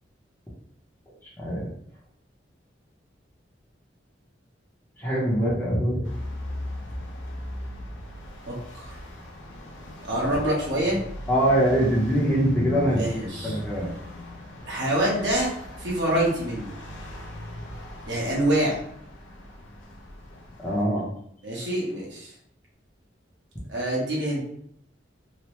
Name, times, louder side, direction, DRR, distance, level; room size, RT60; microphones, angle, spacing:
voice 1, 1.4-1.7 5.0-6.0 11.3-13.0 13.4-13.9 20.6-21.1, right 1 dB, 10° left, -6 dB, 0.7 m, -23 dB
sound 1, 6.0-20.8, left 1 dB, 85° left, 0.6 m, -38 dB
voice 2, 8.5-9.0 10.0-11.0 12.9-13.6 14.6-15.5 15.8-16.7 18.1-18.8 21.4-22.3 23.7-24.4, right 1 dB, 70° right, -4 dB, 1.1 m, -26 dB
3.0 x 2.1 x 3.0 m, 0.69 s
head